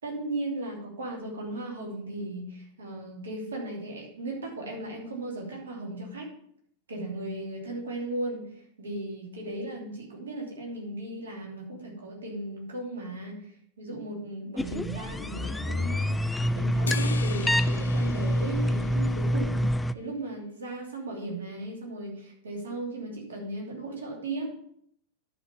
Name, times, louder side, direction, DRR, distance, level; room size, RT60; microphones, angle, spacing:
voice 1, 0.0-6.3 6.9-8.4 8.8-13.4 13.8-24.5, right 2 dB, 70° right, -1 dB, 2.9 m, -36 dB
sound 1, 14.6-19.9, equal, 5° left, 0.3 m, -27 dB
sound 2, 16.9-19.6, left 7 dB, 70° left, 0.5 m, -40 dB
11.0 x 5.1 x 5.5 m, 0.66 s
figure-of-eight pair, 90°, 0 cm